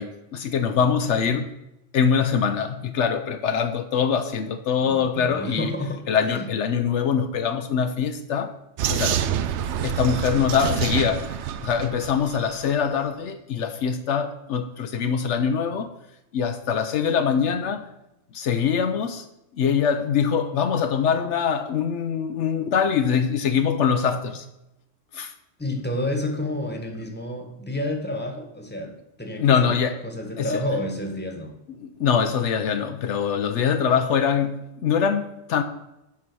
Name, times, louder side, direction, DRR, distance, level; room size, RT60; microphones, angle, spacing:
voice 1, 0.0-1.5 1.9-5.7 6.1-8.5 8.9-9.2 9.8-15.9 16.3-17.8 18.3-19.3 19.5-24.5 25.1-25.3 29.4-30.0 30.4-30.6 31.8-35.6, left 7 dB, 75° left, 8 dB, 1.0 m, -23 dB
voice 2, 4.8-6.5 25.6-28.9 29.2-29.8 30.0-31.5, left 1 dB, 10° left, 3 dB, 1.3 m, -30 dB
Vehicle, 8.8-12.7, right 10 dB, 75° right, 0.9 m, -27 dB
8.4 x 5.7 x 6.2 m, 0.90 s
omnidirectional pair, 1.2 m